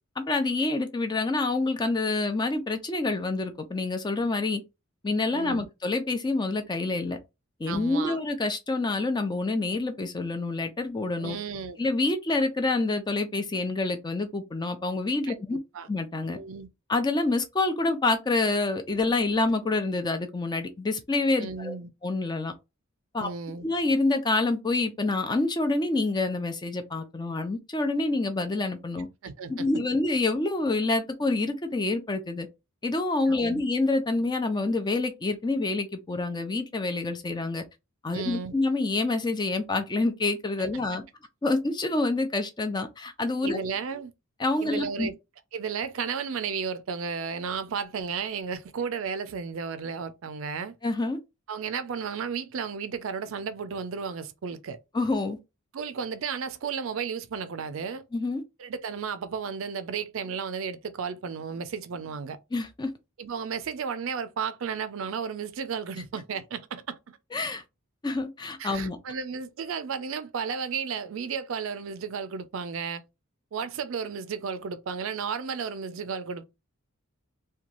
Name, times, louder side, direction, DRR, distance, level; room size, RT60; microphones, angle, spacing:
voice 1, 0.2-4.6 5.0-7.2 7.6-11.4 11.8-15.6 15.9-16.4 16.9-22.5 23.1-23.3 23.6-29.1 29.5-32.5 32.8-37.6 38.0-41.0 41.4-43.6 44.4-45.1 50.8-51.2 54.9-55.4 58.1-58.4 62.5-62.9 67.3-67.6 68.0-69.0, left 2 dB, 20° left, 0.4 m, -27 dB
voice 2, 5.3-5.7 7.7-8.2 11.2-11.8 15.5-15.9 16.3-16.7 21.4-21.9 23.2-23.7 29.2-29.7 33.3-33.6 38.1-38.5 43.4-44.1 44.6-45.1 45.5-50.7 51.5-54.8 55.7-58.0 58.6-62.4 63.2-67.2 68.6-73.0 73.5-76.4, right 6 dB, 65° right, 0.4 m, -33 dB
2.9 x 2.2 x 2.5 m
head